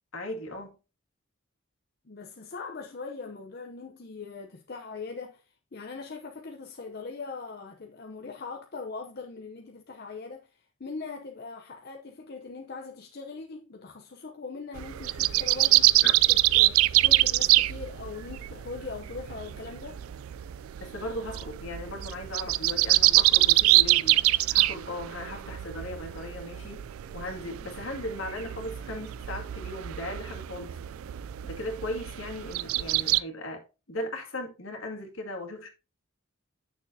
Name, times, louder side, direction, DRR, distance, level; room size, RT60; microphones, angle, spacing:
voice 1, 0.1-0.8 16.0-16.1 20.8-24.2 24.5-26.8 27.1-30.8 31.4-35.7, left 1 dB, 70° left, 2.1 m, -37 dB
voice 2, 2.1-20.0, left 4 dB, 50° left, 0.7 m, -41 dB
sound 1, 14.8-33.2, right 17 dB, 80° right, 0.3 m, -25 dB
9.0 x 6.5 x 2.7 m
head